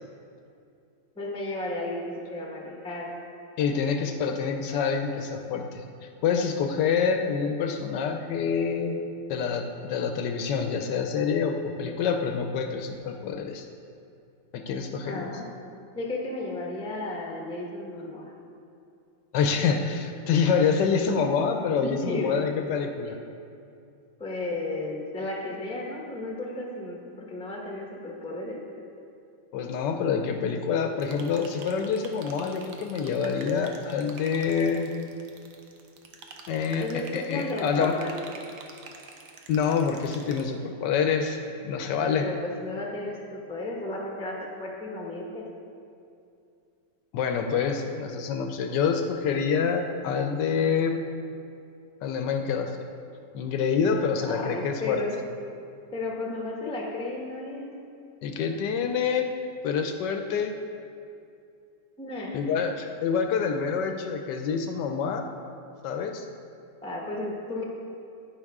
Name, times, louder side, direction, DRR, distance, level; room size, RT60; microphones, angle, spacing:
voice 1, 1.2-3.1 15.0-15.5 15.9-18.3 20.3-20.7 21.8-22.3 24.2-28.6 36.8-38.1 41.9-45.4 54.2-55.2 55.9-57.7 62.0-62.6 66.8-67.6, left 2 dB, 5° left, -1 dB, 0.8 m, -34 dB
voice 2, 3.6-5.8 6.2-9.0 9.3-13.7 14.5-15.3 19.3-23.2 29.5-34.9 36.5-37.9 39.5-42.3 47.1-51.0 52.0-52.7 53.3-55.0 58.2-59.3 59.6-60.5 62.3-65.2 65.8-66.3, left 6 dB, 75° left, 5 dB, 1.2 m, -27 dB
sound 1, 31.0-40.4, right 4 dB, 70° right, 1.4 m, -47 dB
9.9 x 9.3 x 3.6 m, 2.5 s
omnidirectional pair, 2.0 m